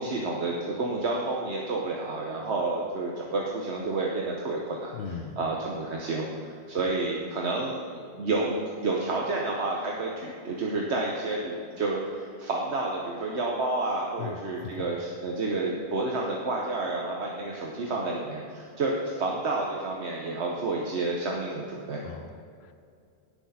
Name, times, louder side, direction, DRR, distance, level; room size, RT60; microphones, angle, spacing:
voice 1, 0.0-7.8 8.2-8.5 8.8-22.0, right 2 dB, 85° right, -2 dB, 1.3 m, -30 dB
voice 2, 4.9-5.4 14.2-14.8 22.0-22.7, left 6 dB, 75° left, 8 dB, 1.0 m, -39 dB
17.0 x 6.2 x 4.2 m, 2.4 s
omnidirectional pair, 1.1 m